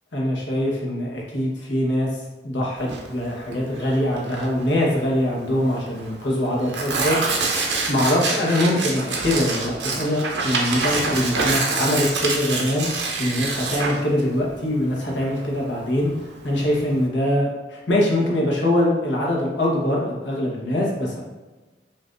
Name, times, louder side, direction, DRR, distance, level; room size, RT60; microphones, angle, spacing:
voice 1, 0.1-2.1 2.4-7.2 7.9-16.1 16.4-21.2, left 1 dB, 80° left, -3 dB, 1.1 m, -23 dB
Tearing, 2.8-17.1, right 3 dB, 70° right, 0.7 m, -27 dB
5.6 x 2.6 x 2.6 m, 1.2 s
head